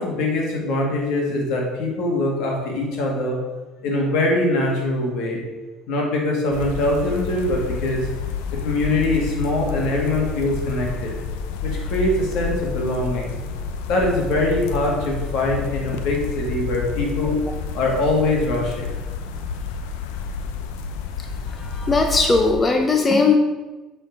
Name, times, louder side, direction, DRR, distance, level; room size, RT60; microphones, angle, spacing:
voice 1, 0.0-3.4 3.8-5.4 5.9-8.1 8.6-11.1 11.6-13.4 13.8-17.4 17.7-18.9, left 1 dB, 75° left, -1 dB, 2.3 m, -23 dB
sound 1, 6.5-22.5, left 5 dB, 90° left, 0.6 m, -29 dB
voice 2, 21.5-23.4, left 4 dB, 25° left, 3 dB, 0.8 m, -18 dB
7.9 x 4.5 x 5.3 m, 1.2 s
supercardioid pair, 100°, 0 cm